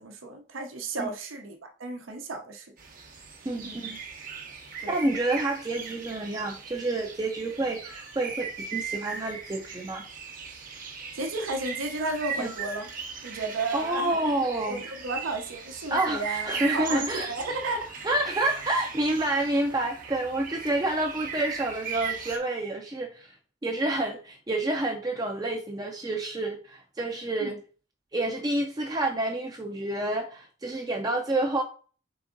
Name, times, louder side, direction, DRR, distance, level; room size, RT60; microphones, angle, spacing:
voice 1, 0.0-2.7 3.6-3.8 4.8-5.0 11.1-12.9 13.2-14.3 14.6-16.5 16.7-17.9 27.4-27.6, right 2 dB, 85° right, 4 dB, 0.8 m, -33 dB
sound 1, 2.8-22.4, right 5 dB, 45° right, 0.9 m, -38 dB
voice 2, 3.4-4.0 4.9-10.0 12.4-12.5 13.7-14.8 15.9-17.3 18.0-23.3 23.6-27.5 28.1-31.6, right 2 dB, 20° right, 2 dB, 0.4 m, -28 dB
4.0 x 3.5 x 3.7 m, 0.39 s
head